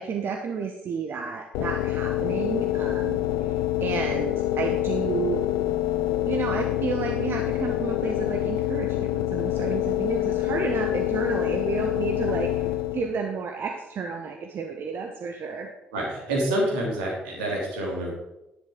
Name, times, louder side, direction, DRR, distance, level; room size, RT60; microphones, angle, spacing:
voice 1, 0.0-5.5 6.3-15.7, right 6 dB, 50° right, 4 dB, 1.1 m, -31 dB
sound 1, 1.5-13.2, left 14 dB, 65° left, 0.6 m, -26 dB
voice 2, 15.9-18.1, right 1 dB, 75° right, -3 dB, 3.1 m, -27 dB
10.5 x 10.0 x 3.8 m, 0.95 s
figure-of-eight pair, 45°, 5 cm